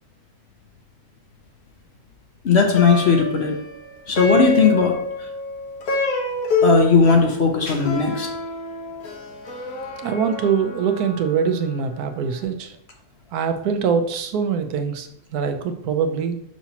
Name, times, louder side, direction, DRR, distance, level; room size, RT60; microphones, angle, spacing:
voice 1, 2.4-3.6 4.1-5.3 6.6-8.3, left 5 dB, 55° left, 3 dB, 1.0 m, -17 dB
Plucked string instrument, 2.6-12.0, left 2 dB, 75° left, 1.6 m, -27 dB
voice 2, 10.0-12.8 13.3-16.4, right 6 dB, 90° right, 7 dB, 1.2 m, -23 dB
5.9 x 5.7 x 2.8 m, 0.72 s
omnidirectional pair, 1.6 m